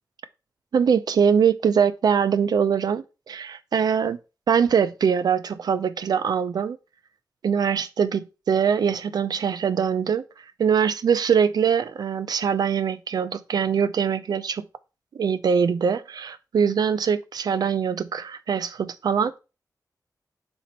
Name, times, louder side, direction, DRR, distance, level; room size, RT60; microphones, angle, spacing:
voice 1, 0.7-4.2 4.5-6.8 7.4-10.2 10.6-14.6 15.1-19.4, right 7 dB, 70° right, 0.5 m, -23 dB
4.5 x 4.2 x 5.2 m
wide cardioid pair, 165°, 7 cm